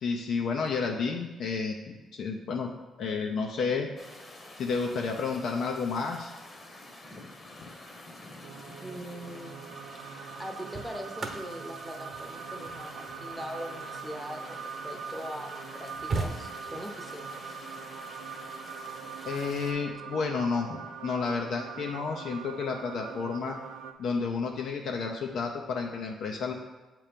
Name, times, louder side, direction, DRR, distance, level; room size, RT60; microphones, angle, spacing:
voice 1, 0.0-1.7 2.1-2.7 3.0-3.9 4.6-6.3 19.3-23.6 24.0-26.5, left 5 dB, 70° left, 2 dB, 0.5 m, -31 dB
sound 1, 4.0-19.7, left 2 dB, 30° left, 0.9 m, -48 dB
sound 2, 8.4-23.9, right 7 dB, 90° right, 0.4 m, -42 dB
voice 2, 8.8-9.6 10.4-17.4, equal, ahead, 3 dB, 0.7 m, -41 dB
sound 3, 9.3-9.4 10.3-14.9 15.5-15.6 15.7-17.0 18.7-18.9, right 3 dB, 45° right, 1.0 m, -39 dB
7.1 x 3.0 x 5.1 m, 1.2 s
cardioid pair, 90°, 0 cm